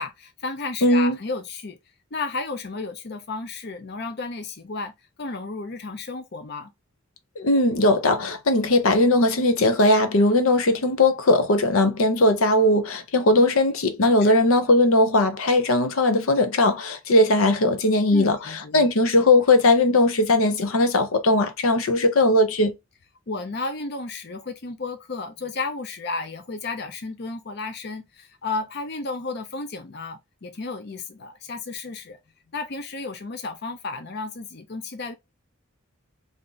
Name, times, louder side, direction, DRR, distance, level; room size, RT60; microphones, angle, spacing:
voice 1, 0.0-1.8 2.1-6.7 14.2-14.4 18.1-18.9 23.3-32.2 32.5-35.1, left 3 dB, 50° left, 0.6 m, -33 dB
voice 2, 0.8-1.2 7.4-22.7, left 2 dB, 85° left, 0.7 m, -19 dB
3.5 x 2.6 x 3.8 m
head